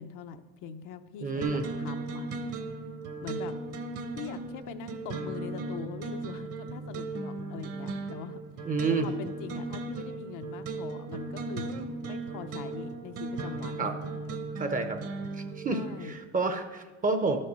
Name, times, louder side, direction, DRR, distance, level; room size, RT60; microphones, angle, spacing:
voice 1, 0.0-2.3 3.2-3.5 4.2-14.4 15.7-16.1, left 7 dB, 65° left, 8 dB, 0.7 m, -43 dB
voice 2, 1.2-1.6 8.7-9.1 13.8-13.9 14.6-15.0 15.3-17.4, right 4 dB, 25° right, 8 dB, 0.6 m, -29 dB
sound 1, 1.4-16.2, right 3 dB, 45° right, 1.0 m, -37 dB
11.5 x 5.4 x 6.7 m, 1.3 s
cardioid pair, 140°, 33 cm